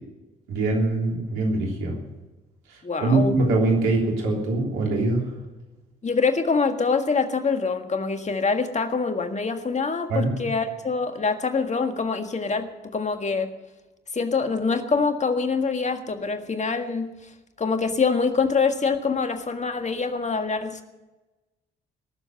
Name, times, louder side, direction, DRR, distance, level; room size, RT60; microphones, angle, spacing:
voice 1, 0.5-1.9 3.0-5.2 10.1-10.3, right 2 dB, 85° right, 0 dB, 3.3 m, -23 dB
voice 2, 2.8-3.4 6.0-13.5 14.1-17.2 17.6-20.8, left 4 dB, 35° left, 7 dB, 1.7 m, -25 dB
18.5 x 7.3 x 9.3 m, 1.1 s
hypercardioid pair, 50°, 20 cm